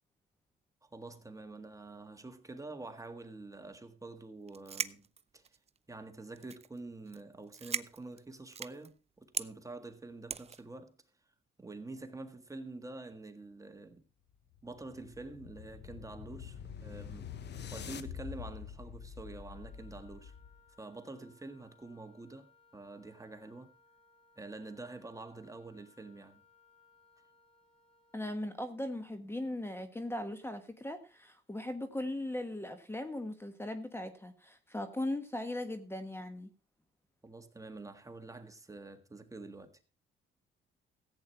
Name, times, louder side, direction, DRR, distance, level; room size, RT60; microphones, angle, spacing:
voice 1, 0.8-5.1 5.3-5.5 5.9-10.9 11.6-14.0 14.6-17.3 17.7-20.3 20.8-23.7 24.4-26.4 37.2-39.8, right 2 dB, 15° right, 1.7 m, -47 dB
sound 1, 4.5-5.8 6.4-6.8 7.1-7.2 7.5-8.9 9.3-9.5 10.3-10.6, right 6 dB, 30° right, 0.6 m, -38 dB
sound 2, 14.3-20.7, left 7 dB, 60° left, 1.1 m, -46 dB
Wind instrument woodwind instrument, 19.5-28.4, left 4 dB, 30° left, 4.1 m, -67 dB
voice 2, 28.1-36.5, left 1 dB, 10° left, 1.3 m, -38 dB
15.0 x 8.7 x 4.5 m
cardioid pair, 90°, 20 cm